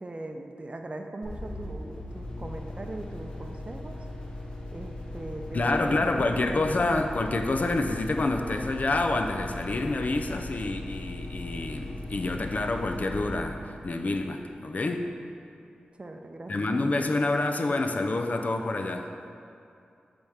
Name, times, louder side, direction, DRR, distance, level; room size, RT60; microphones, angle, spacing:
voice 1, 0.0-4.0 4.7-6.1 6.5-7.0 16.0-16.7, right 2 dB, 40° right, 4 dB, 0.6 m, -40 dB
sound 1, 1.2-14.7, left 1 dB, 30° left, 1.0 m, -39 dB
voice 2, 5.5-15.1 16.5-19.1, left 2 dB, 55° left, 5 dB, 0.5 m, -28 dB
7.8 x 3.5 x 5.6 m, 2.5 s
cardioid pair, 60°, 3 cm